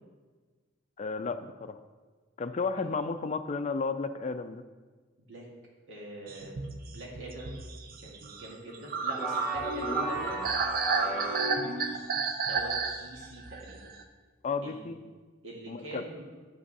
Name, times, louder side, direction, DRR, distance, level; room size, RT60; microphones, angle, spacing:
voice 1, 1.0-1.8 2.4-4.6 14.4-15.0 15.7-16.0, left 4 dB, 35° left, 9 dB, 0.4 m, -33 dB
voice 2, 5.9-6.6 6.9-7.6 8.0-10.7 11.0-11.8 12.4-13.9 14.6-14.9 15.4-16.2, right 1 dB, 80° right, -3 dB, 2.0 m, -43 dB
sound 1, 6.3-14.0, right 4 dB, 50° right, 0.6 m, -32 dB
sound 2, 9.2-12.1, right 1 dB, ahead, 2.4 m, -35 dB
8.7 x 6.1 x 4.1 m, 1.4 s
head